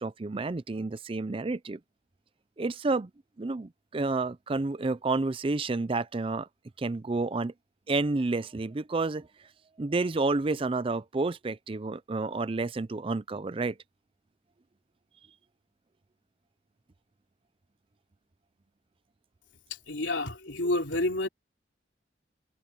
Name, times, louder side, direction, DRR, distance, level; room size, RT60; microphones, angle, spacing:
voice 1, 0.0-1.8 2.6-3.1 3.4-6.5 6.8-7.5 7.9-9.3 9.8-13.8, right 3 dB, 30° right, 0.5 m, -30 dB
voice 2, 19.9-21.3, left 2 dB, 80° left, 3.5 m, -29 dB
head